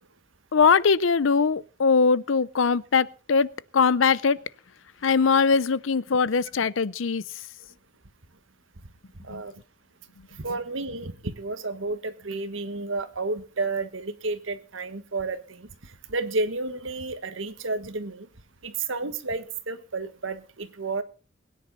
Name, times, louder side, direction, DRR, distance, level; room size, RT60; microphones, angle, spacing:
voice 1, 0.5-4.4 5.0-7.2 9.3-9.4, left 5 dB, 75° left, 0.6 m, -21 dB
voice 2, 10.4-18.3 18.6-21.0, right 3 dB, 75° right, 1.5 m, -31 dB
21.5 x 10.0 x 4.1 m
head